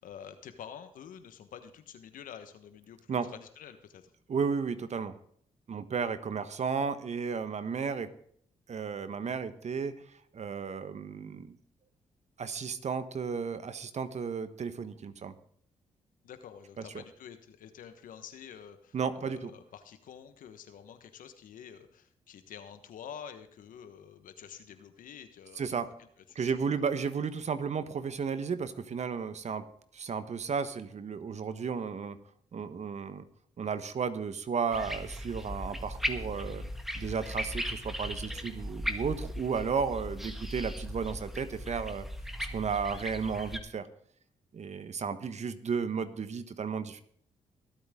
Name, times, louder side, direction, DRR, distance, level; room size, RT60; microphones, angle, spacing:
voice 1, 0.0-4.1 16.2-25.9 26.3-26.6 40.1-40.3, left 8 dB, 75° left, 10 dB, 1.4 m, -48 dB
voice 2, 4.3-5.1 5.7-8.1 8.7-9.9 10.3-11.6 12.4-15.3 16.9-17.0 18.9-19.5 25.6-25.9 26.3-29.6 29.9-32.2 32.5-33.2 33.6-36.6 37.0-42.0 42.5-43.9 44.5-47.0, right 6 dB, 55° right, 12 dB, 1.3 m, -33 dB
sound 1, 34.7-43.6, equal, ahead, 1.8 m, -37 dB
21.5 x 8.5 x 3.8 m, 0.62 s
supercardioid pair, 50°, 14 cm